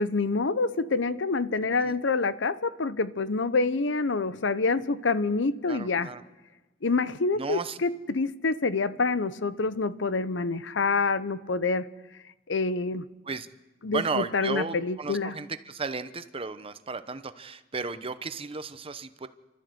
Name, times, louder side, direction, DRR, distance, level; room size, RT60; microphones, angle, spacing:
voice 1, 0.0-6.1 6.8-11.9 12.5-13.1 13.8-15.3, left 3 dB, 75° left, 0.8 m, -27 dB
voice 2, 5.7-6.2 7.3-7.8 13.2-13.5 13.8-19.3, right 4 dB, 30° right, 0.8 m, -34 dB
30.0 x 13.0 x 7.9 m
head